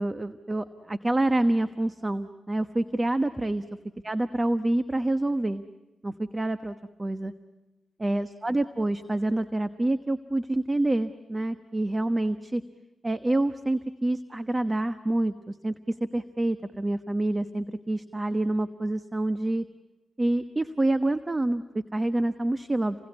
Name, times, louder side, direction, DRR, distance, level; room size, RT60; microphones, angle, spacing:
voice 1, 0.0-3.6 4.0-5.6 6.0-7.3 8.0-12.6 13.0-19.7 20.2-23.0, right 1 dB, 20° right, 11 dB, 1.1 m, -27 dB
29.0 x 21.0 x 9.8 m, 1.1 s
cardioid pair, 75°, 0 cm